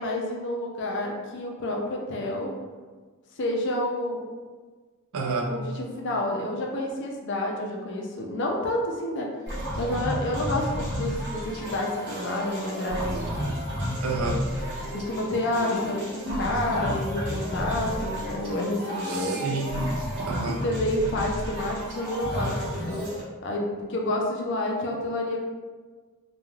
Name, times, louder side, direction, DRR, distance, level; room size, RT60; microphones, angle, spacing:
voice 1, 0.0-2.5 3.4-4.2 5.5-9.3 9.8-13.2 14.9-19.4 20.5-23.1 23.4-25.4, left 1 dB, 55° left, 0 dB, 0.5 m, -29 dB
voice 2, 5.1-5.5 14.0-14.4 19.1-19.9 20.2-20.6, right 3 dB, 75° right, 2 dB, 0.4 m, -29 dB
sound 1, 9.5-23.2, equal, 50° right, 1.0 m, -32 dB
3.1 x 2.3 x 2.3 m, 1.4 s
head